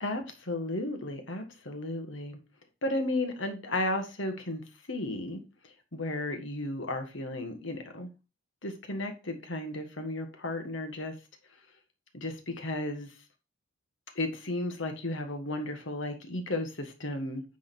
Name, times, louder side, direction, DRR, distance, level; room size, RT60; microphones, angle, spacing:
voice 1, 0.0-2.4 2.8-4.6 4.9-5.4 5.9-8.1 8.6-11.1 12.1-13.1 14.2-17.4, left 1 dB, 70° left, 1.6 m, -34 dB
9.6 x 3.8 x 4.3 m
head